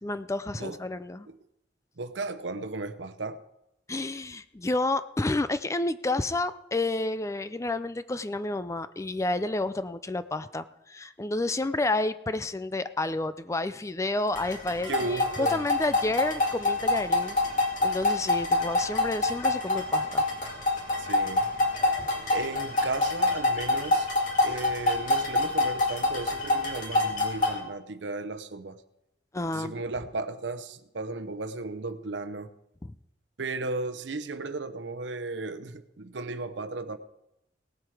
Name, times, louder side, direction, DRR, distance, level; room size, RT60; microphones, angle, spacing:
voice 1, 0.0-1.3 3.9-17.4 17.8-20.2 29.3-29.8 32.8-32.9, left 2 dB, 15° left, 0.4 m, -30 dB
voice 2, 2.0-3.4 14.9-15.7 21.0-21.5 22.3-24.1 24.4-28.8 29.5-32.5 33.4-37.0, right 3 dB, 85° right, 0.8 m, -35 dB
sound 1, 14.3-27.6, left 2 dB, 45° left, 2.7 m, -26 dB
18.0 x 7.6 x 4.9 m
head